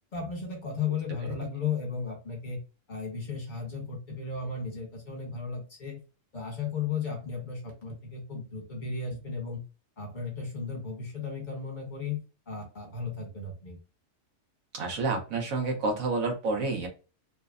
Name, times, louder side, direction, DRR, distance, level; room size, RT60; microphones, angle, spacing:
voice 1, 0.1-2.6 2.9-6.0 6.3-9.6 10.0-12.2 12.5-13.8, left 5 dB, 40° left, 0 dB, 1.2 m, -35 dB
voice 2, 14.7-16.9, right 3 dB, 90° right, 2 dB, 1.3 m, -29 dB
3.2 x 2.1 x 2.4 m, 0.32 s
omnidirectional pair, 1.4 m